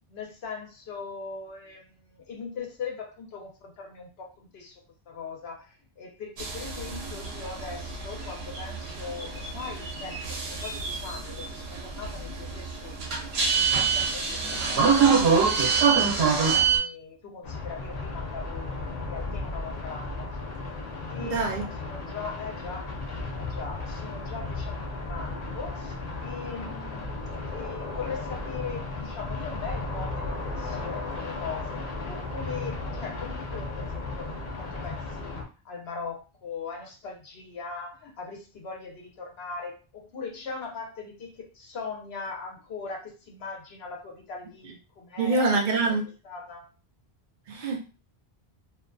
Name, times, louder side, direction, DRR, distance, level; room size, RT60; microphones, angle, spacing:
voice 1, 0.1-4.8 5.1-15.3 15.6-20.3 21.1-22.9 23.3-25.9 26.2-34.3 34.6-35.4 35.6-45.6 46.2-46.7, left 5 dB, 85° left, 0.9 m, -40 dB
sound 1, 6.4-16.8, right 5 dB, 90° right, 0.9 m, -26 dB
sound 2, 17.4-35.4, left 3 dB, 50° left, 0.6 m, -35 dB
voice 2, 21.2-21.6 45.2-46.0 47.5-47.9, right 3 dB, 60° right, 0.6 m, -25 dB
2.5 x 2.4 x 2.2 m
omnidirectional pair, 1.0 m